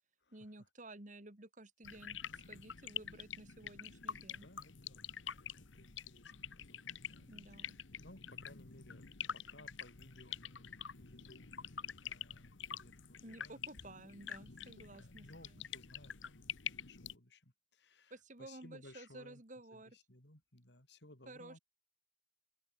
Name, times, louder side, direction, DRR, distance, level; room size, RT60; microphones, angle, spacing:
voice 1, 0.3-4.5 7.3-7.8 13.2-15.6 18.1-20.0 21.3-21.6, right 2 dB, 40° right, 2.2 m, -54 dB
sound 1, 1.8-17.2, left 8 dB, 75° left, 1.3 m, -47 dB
voice 2, 4.3-5.0 5.6-7.3 7.6-14.6 14.9-19.4 19.7-21.6, left 1 dB, 60° left, 4.8 m, -61 dB
open air
head